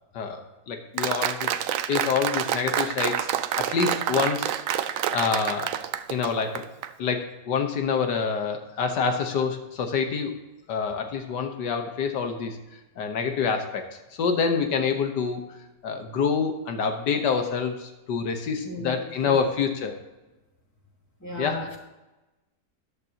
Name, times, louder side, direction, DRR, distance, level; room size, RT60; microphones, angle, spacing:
voice 1, 0.1-1.5 1.9-3.3 3.6-4.5 5.1-5.7 6.1-6.6 7.0-10.3 10.7-12.6 13.0-13.9 14.1-15.4 15.8-19.9 21.4-21.8, left 6 dB, 90° left, 5 dB, 1.8 m, -27 dB
Applause, 1.0-6.9, right 10 dB, 65° right, 0.9 m, -28 dB
voice 2, 21.2-21.8, left 2 dB, 10° left, -3 dB, 2.8 m, -34 dB
13.5 x 11.0 x 2.9 m, 1.0 s
omnidirectional pair, 1.8 m